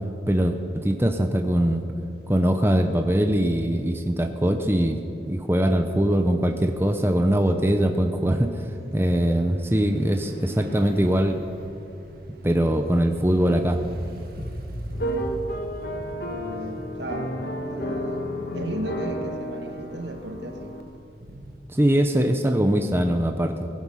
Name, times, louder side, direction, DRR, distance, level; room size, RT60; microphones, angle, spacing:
voice 1, 0.3-1.8 2.3-5.0 5.3-8.7 8.9-11.4 12.4-13.8 21.7-23.7, right 1 dB, 15° right, 5 dB, 0.7 m, -22 dB
sound 1, 2.1-21.6, equal, 55° right, 1.6 m, -43 dB
sound 2, 14.9-20.8, equal, 55° left, 1.3 m, -31 dB
voice 2, 16.1-20.7, right 1 dB, 70° right, 5 dB, 1.5 m, -35 dB
19.0 x 11.0 x 5.6 m, 2.7 s
head